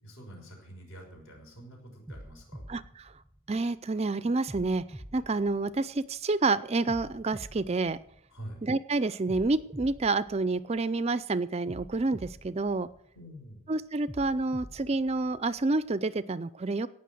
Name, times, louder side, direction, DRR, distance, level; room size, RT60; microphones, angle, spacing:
voice 1, 0.0-2.6 8.3-8.6 13.1-13.7, right 1 dB, 60° left, 1 dB, 5.9 m, -46 dB
sound 1, 1.2-1.5 2.1-3.9 4.5-6.3 6.9-8.7 9.3-11.1 11.7-13.5 14.1-15.9, right 1 dB, 5° left, 0.9 m, -47 dB
voice 2, 2.7-3.1 3.5-4.8 5.1-8.0 8.6-12.9 13.7-16.9, right 3 dB, 30° right, 16 dB, 0.4 m, -28 dB
18.0 x 6.4 x 7.6 m, 0.73 s
head